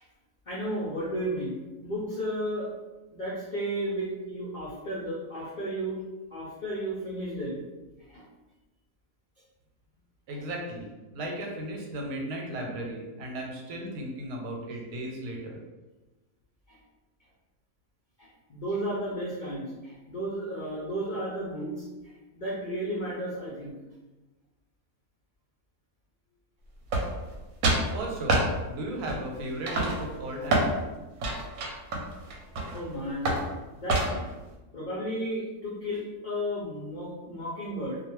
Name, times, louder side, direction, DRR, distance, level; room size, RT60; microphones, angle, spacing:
voice 1, 0.5-1.5 1.8-2.7 3.1-6.0 6.3-7.6 8.1-8.3 10.3-10.4 16.7-16.8 18.2-21.9 22.3-23.7 32.7-33.3 33.8-34.3 34.7-38.0, equal, 75° left, -7 dB, 0.4 m, -33 dB
voice 2, 10.3-15.6 27.9-30.8, right 1 dB, 90° right, 0 dB, 1.1 m, -36 dB
sound 1, 26.9-27.4 27.6-27.9 28.3-28.5 29.1-29.4 29.7-30.7 31.2-32.8 33.3-33.5 33.9-34.3, right 2 dB, 70° right, 0.9 m, -26 dB
2.4 x 2.3 x 3.0 m, 1.1 s
omnidirectional pair, 1.6 m